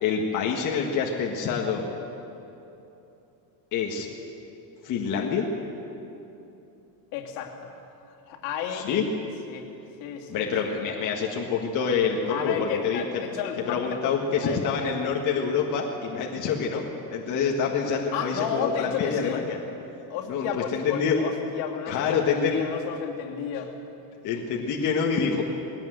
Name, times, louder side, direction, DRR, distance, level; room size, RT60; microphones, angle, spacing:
voice 1, 0.0-1.9 3.7-4.1 4.8-5.5 8.7-9.0 10.3-13.0 13.7-19.6 20.3-20.5 20.7-21.2 21.9-22.6 24.2-25.4, left 6 dB, 40° left, -1 dB, 1.8 m, -26 dB
voice 2, 7.1-7.8 8.1-8.9 9.5-9.7 10.0-10.8 12.3-14.1 14.4-14.8 18.1-19.4 20.1-23.7, left 8 dB, 70° left, 0 dB, 2.8 m, -32 dB
20.0 x 17.5 x 8.0 m, 2.9 s
cardioid pair, 165°, 46 cm